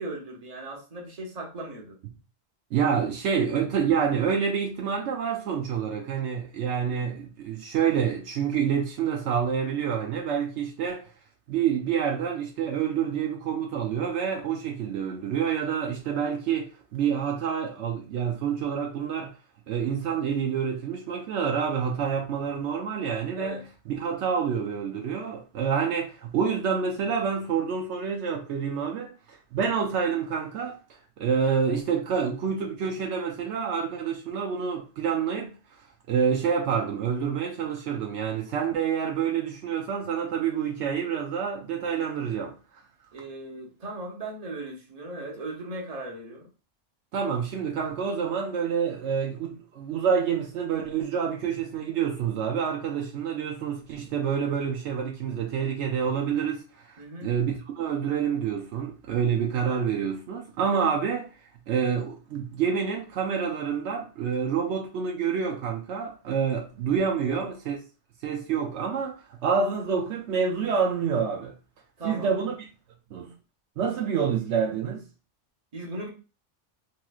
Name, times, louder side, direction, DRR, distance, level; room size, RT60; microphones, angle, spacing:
voice 1, 0.0-2.0 6.8-7.1 23.4-23.6 43.1-46.5 57.0-57.3 67.2-67.5 72.0-72.4 75.7-76.1, right 2 dB, 35° right, 0.9 m, -38 dB
voice 2, 2.7-11.0 11.5-19.4 19.7-35.5 36.1-42.5 47.1-57.0 57.2-61.3 61.7-67.8 68.2-71.5 72.0-72.5 73.1-73.3 73.8-75.0, right 7 dB, 75° right, 0.8 m, -27 dB
3.0 x 3.0 x 2.3 m
omnidirectional pair, 1.2 m